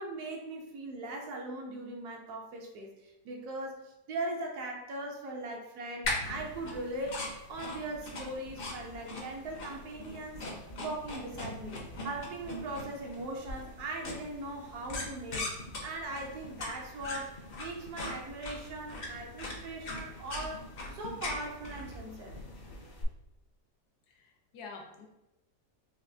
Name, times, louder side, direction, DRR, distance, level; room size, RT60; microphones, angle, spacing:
voice 1, 0.0-22.3, right 2 dB, 70° right, 1 dB, 1.1 m, -40 dB
sound 1, 6.0-23.0, left 2 dB, 55° left, 0.6 m, -41 dB
voice 2, 24.1-25.1, left 4 dB, 70° left, 2 dB, 1.2 m, -47 dB
4.2 x 2.5 x 2.6 m, 0.92 s
omnidirectional pair, 1.8 m